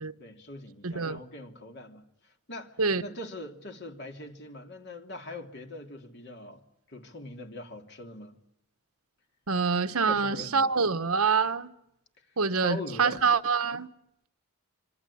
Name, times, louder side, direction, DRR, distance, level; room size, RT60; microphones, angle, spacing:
voice 1, 0.2-6.6 6.9-8.4 10.0-10.8 12.6-13.2, left 2 dB, 50° left, 2.9 m, -42 dB
voice 2, 0.8-1.2 2.8-3.0 9.5-11.7 12.4-13.9, right 5 dB, 90° right, 1.2 m, -26 dB
26.0 x 26.0 x 8.6 m
head